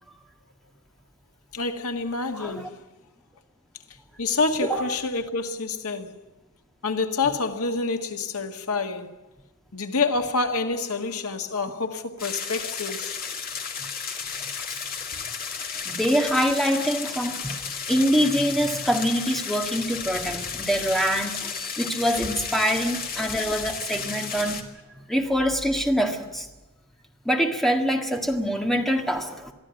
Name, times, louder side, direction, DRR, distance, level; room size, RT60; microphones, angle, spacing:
voice 1, 1.5-2.8 4.2-6.2 6.8-9.1 9.7-13.2, left 3 dB, 90° left, 1.7 m, -27 dB
voice 2, 2.3-2.7 4.6-4.9 15.9-17.5 17.9-24.6 25.1-26.5 27.3-29.5, equal, ahead, 1.7 m, -24 dB
sound 1, 12.2-24.6, left 6 dB, 40° left, 2.2 m, -33 dB
23.0 x 14.0 x 9.7 m
head